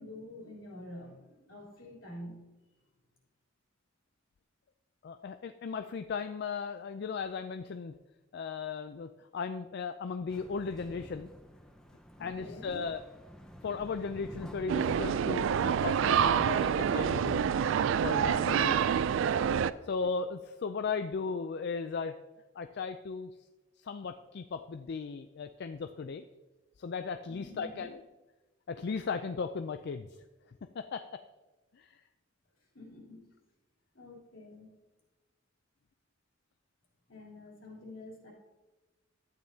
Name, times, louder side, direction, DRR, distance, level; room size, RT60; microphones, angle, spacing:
voice 1, 0.0-2.5 12.2-12.8 18.3-18.9 27.3-27.9 32.7-33.3 33.9-34.8 37.1-38.3, left 1 dB, 80° left, -3 dB, 3.3 m, -48 dB
voice 2, 5.0-7.9 8.3-11.3 12.2-13.0 13.6-17.6 18.0-18.8 19.8-22.1 22.6-23.3 23.8-26.2 26.8-28.0 28.7-30.1 30.7-31.2 31.7-32.0, left 5 dB, 55° left, 8 dB, 0.4 m, -36 dB
sound 1, 10.3-18.7, equal, 5° left, 0.7 m, -49 dB
sound 2, 14.7-19.7, right 8 dB, 65° right, 0.3 m, -27 dB
12.5 x 9.0 x 2.8 m, 1.1 s
head